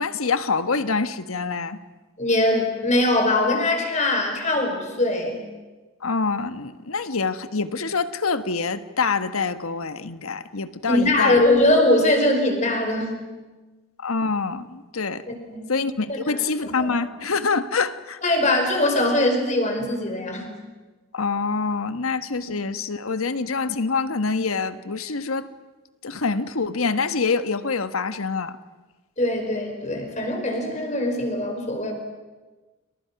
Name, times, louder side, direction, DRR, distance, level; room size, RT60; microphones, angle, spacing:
voice 1, 0.0-1.8 6.0-11.4 14.0-15.2 15.7-18.2 21.1-25.5 26.0-28.6, left 4 dB, 90° left, 1.4 m, -25 dB
voice 2, 2.2-5.4 10.9-13.2 15.5-15.7 16.1-16.7 18.2-20.5 29.2-31.9, left 1 dB, 35° left, 4.9 m, -22 dB
30.0 x 28.0 x 6.0 m
head